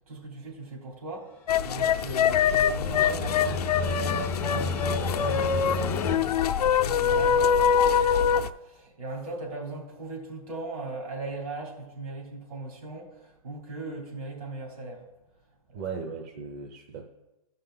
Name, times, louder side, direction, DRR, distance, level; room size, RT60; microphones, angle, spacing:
voice 1, 0.0-15.0 15.7-15.9, right 3 dB, 70° right, -1 dB, 3.4 m, -39 dB
sound 1, 1.5-8.5, left 7 dB, 80° left, 0.6 m, -24 dB
sound 2, 1.6-6.2, left 3 dB, 10° left, 0.5 m, -32 dB
voice 2, 15.7-17.1, right 5 dB, 30° right, 3 dB, 0.7 m, -37 dB
14.0 x 5.5 x 3.8 m, 1.0 s
hypercardioid pair, 155°, 19 cm